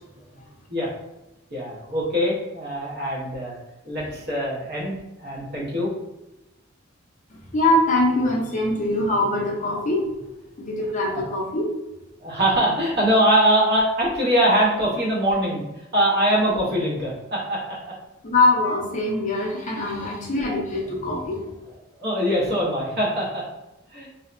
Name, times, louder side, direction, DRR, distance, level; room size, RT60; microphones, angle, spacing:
voice 1, 1.5-3.6 3.8-4.9 5.2-5.9 12.2-15.6 15.9-17.9 20.0-20.1 22.0-23.4 23.9-24.1, right 1 dB, 55° right, -5 dB, 0.9 m, -22 dB
voice 2, 7.3-10.1 10.6-11.7 18.2-21.4, left 2 dB, 35° left, -2 dB, 0.5 m, -23 dB
2.7 x 2.1 x 2.4 m, 0.97 s
head